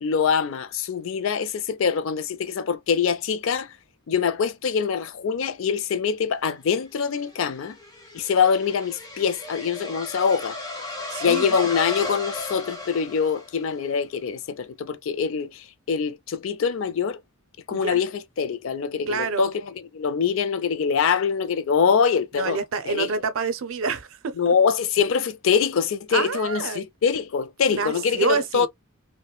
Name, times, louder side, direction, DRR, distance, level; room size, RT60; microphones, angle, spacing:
voice 1, 0.0-3.7 4.1-7.8 8.1-10.6 11.2-17.2 17.7-22.6 22.9-23.1 24.4-28.7, left 6 dB, 70° left, 0.4 m, -24 dB
sound 1, 6.8-13.9, left 2 dB, 20° left, 0.7 m, -35 dB
voice 2, 11.1-11.6 17.7-18.0 19.1-19.5 22.3-24.5 26.1-26.8 27.7-28.7, right 5 dB, 75° right, 0.5 m, -27 dB
3.0 x 2.1 x 2.2 m
head